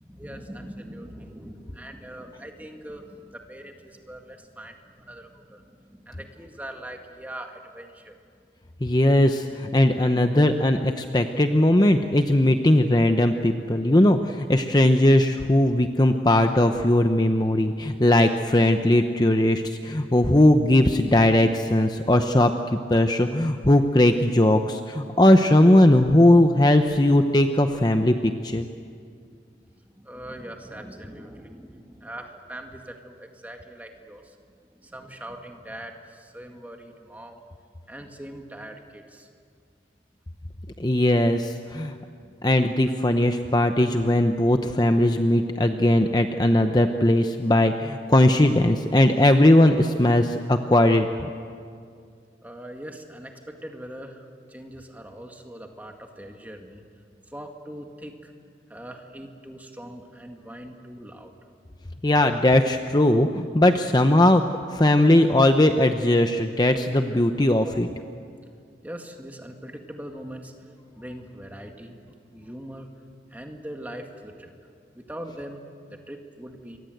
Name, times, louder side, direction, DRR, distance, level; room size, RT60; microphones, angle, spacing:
voice 1, 0.0-8.2 29.7-34.4 34.7-37.4 37.9-39.3 42.2-42.3 52.4-56.8 57.3-58.3 58.7-61.4 68.8-70.7 70.9-72.0 72.3-72.9 73.3-74.5 74.9-76.8, right 1 dB, 10° right, 3 dB, 2.0 m, -41 dB
voice 2, 8.8-22.5 22.9-28.6 40.8-41.9 42.4-51.1 62.0-67.9, left 1 dB, 25° left, 6 dB, 0.8 m, -19 dB
27.5 x 23.5 x 8.0 m, 2.3 s
head